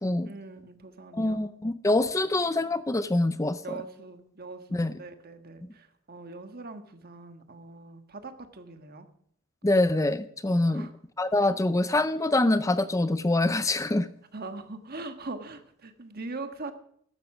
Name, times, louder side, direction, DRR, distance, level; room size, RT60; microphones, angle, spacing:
voice 1, 0.2-1.4 3.6-9.1 10.7-10.9 14.3-16.7, right 3 dB, 45° right, 8 dB, 1.5 m, -41 dB
voice 2, 1.1-3.6 4.7-4.9 9.6-10.9 11.2-14.1, left 2 dB, 15° left, 13 dB, 0.5 m, -25 dB
14.0 x 12.5 x 6.1 m, 0.66 s
head